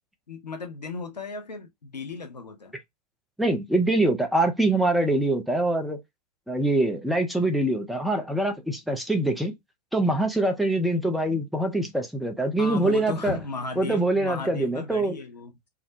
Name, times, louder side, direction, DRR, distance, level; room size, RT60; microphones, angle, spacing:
voice 1, 0.3-2.8 12.6-15.6, left 3 dB, 85° left, 0.5 m, -35 dB
voice 2, 3.4-6.0 6.5-9.5 9.9-13.4 13.8-15.1, right 2 dB, ahead, 0.4 m, -24 dB
2.4 x 2.0 x 2.5 m
figure-of-eight pair, 100°, 21 cm